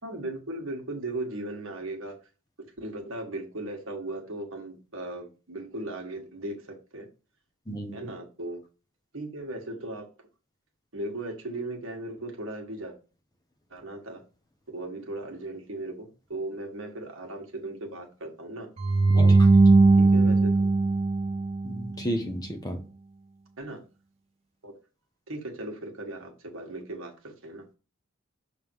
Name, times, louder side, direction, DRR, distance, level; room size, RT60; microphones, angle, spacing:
voice 1, 0.0-2.1 2.8-7.1 7.9-8.6 9.1-10.1 10.9-13.0 13.7-14.2 14.7-18.7 19.1-19.4 19.9-20.5 23.6-23.8 24.6-24.7 25.3-27.6, right 2 dB, 65° right, 1.5 m, -37 dB
voice 2, 7.7-8.0 19.2-19.4 21.6-22.8, equal, 15° left, 0.7 m, -32 dB
sound 1, 18.8-22.0, right 3 dB, 30° right, 0.4 m, -19 dB
6.4 x 3.6 x 4.6 m
head